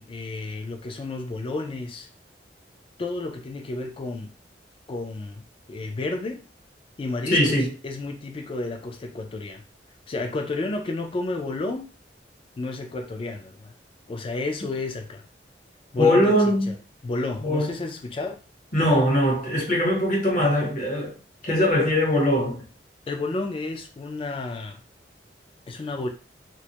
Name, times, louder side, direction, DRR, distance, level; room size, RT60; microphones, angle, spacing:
voice 1, 0.0-2.1 3.0-4.3 4.9-6.4 7.0-9.6 10.1-11.9 12.6-13.8 14.1-15.3 15.9-16.7 17.0-18.4 23.1-24.8 25.7-26.1, left 2 dB, 30° left, 0.3 m, -31 dB
voice 2, 7.3-7.7 16.0-16.7 17.4-17.7 18.7-21.1 21.4-22.6, left 1 dB, 50° left, 0.9 m, -21 dB
2.2 x 2.0 x 2.8 m
head